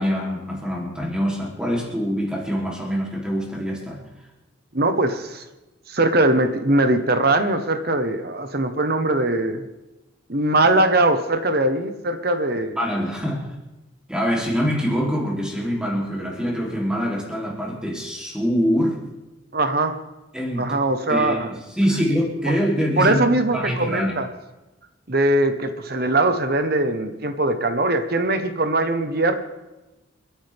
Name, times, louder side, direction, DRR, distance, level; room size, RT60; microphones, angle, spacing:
voice 1, 0.0-4.0 12.8-13.5 14.1-19.0 20.3-20.8 21.1-23.2 23.5-24.2, equal, 5° right, -2 dB, 3.3 m, -24 dB
voice 2, 4.7-5.4 5.9-9.6 10.3-12.8 19.5-20.0 20.6-21.5 23.0-24.3 25.1-29.4, right 2 dB, 50° right, 8 dB, 1.2 m, -21 dB
30.0 x 10.0 x 3.6 m, 1.1 s
head